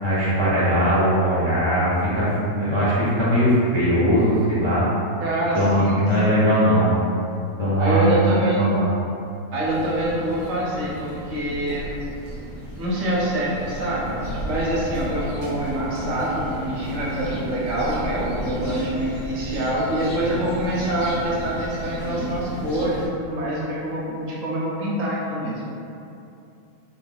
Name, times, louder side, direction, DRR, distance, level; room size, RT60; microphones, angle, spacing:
voice 1, 0.0-4.8 5.5-7.0 7.6-8.9, equal, 35° left, -10 dB, 0.4 m, -20 dB
voice 2, 5.2-6.7 7.8-8.7 9.5-11.9 12.8-25.6, right 1 dB, 65° right, -6 dB, 1.0 m, -25 dB
sound 1, 9.6-23.1, equal, 60° left, 1.6 m, -33 dB
3.7 x 2.6 x 3.3 m, 2.7 s
omnidirectional pair, 1.7 m